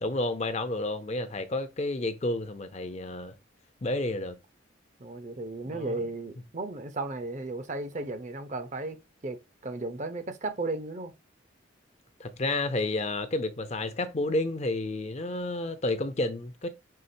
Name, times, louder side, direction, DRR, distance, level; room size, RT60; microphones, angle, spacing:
voice 1, 0.0-3.3 3.8-4.4 5.7-6.0 12.2-16.7, left 2 dB, 35° left, 0.5 m, -30 dB
voice 2, 5.0-11.1, right 2 dB, 40° right, 0.6 m, -35 dB
5.6 x 3.5 x 2.6 m
head